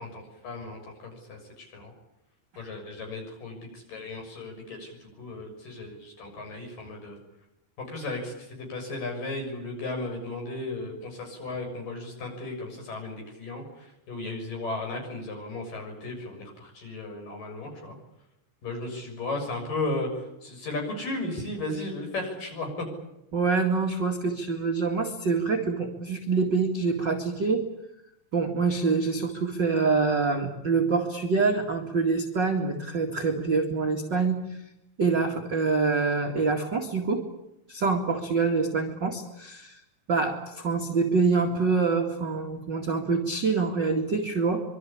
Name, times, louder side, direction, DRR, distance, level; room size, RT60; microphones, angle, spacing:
voice 1, 0.0-1.9 2.6-7.2 7.8-17.9 18.6-22.9, left 2 dB, 45° left, 3 dB, 7.9 m, -35 dB
voice 2, 23.3-27.6 28.3-34.4 35.0-37.2 37.7-39.8 40.1-44.6, right 4 dB, 50° right, 2 dB, 1.3 m, -25 dB
25.0 x 24.0 x 8.7 m, 0.88 s
omnidirectional pair, 5.7 m